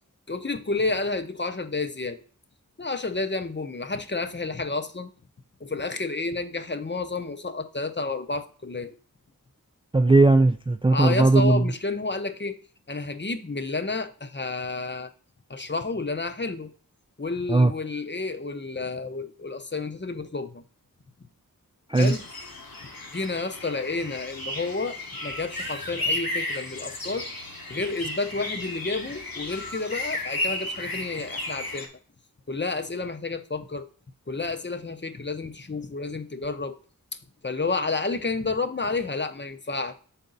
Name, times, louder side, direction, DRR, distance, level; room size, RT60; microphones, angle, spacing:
voice 1, 0.3-2.2 2.8-5.1 5.6-8.9 10.9-12.6 12.9-15.1 15.5-16.7 17.2-20.6 22.0-22.3 23.1-27.3 27.7-31.9 32.5-33.9 34.3-36.8 37.4-39.9, left 3 dB, 30° left, 7 dB, 0.7 m, -30 dB
voice 2, 9.9-11.6 17.5-17.7 21.9-22.1, right 2 dB, 15° right, 8 dB, 0.3 m, -18 dB
sound 1, 22.0-31.9, left 2 dB, 75° left, 1.2 m, -34 dB
6.6 x 4.1 x 3.9 m, 0.41 s
wide cardioid pair, 40°, 35 cm